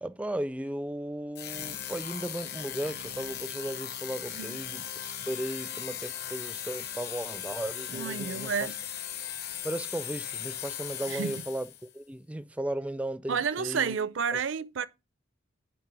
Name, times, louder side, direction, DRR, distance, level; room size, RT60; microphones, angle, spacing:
voice 1, 0.0-8.7 9.6-13.9 14.3-14.4, right 1 dB, 5° right, 0.4 m, -36 dB
sound 1, 1.3-11.9, left 10 dB, 55° left, 0.9 m, -38 dB
voice 2, 7.9-8.7 11.1-11.4 13.3-14.9, right 6 dB, 70° right, 0.5 m, -30 dB
9.5 x 5.1 x 4.6 m
head